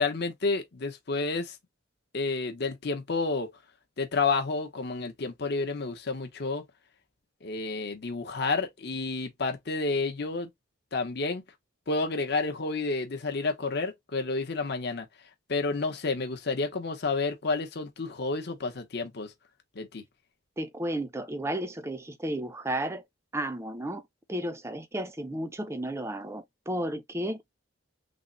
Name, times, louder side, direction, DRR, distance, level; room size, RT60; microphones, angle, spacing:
voice 1, 0.0-1.5 2.1-3.5 4.0-6.6 7.4-10.5 10.9-11.4 11.9-15.1 15.5-19.3 19.8-20.0, left 3 dB, 55° left, 0.8 m, -30 dB
voice 2, 20.6-23.0 23.3-24.0 24.3-27.4, right 1 dB, 15° right, 0.4 m, -33 dB
3.5 x 2.0 x 3.8 m
head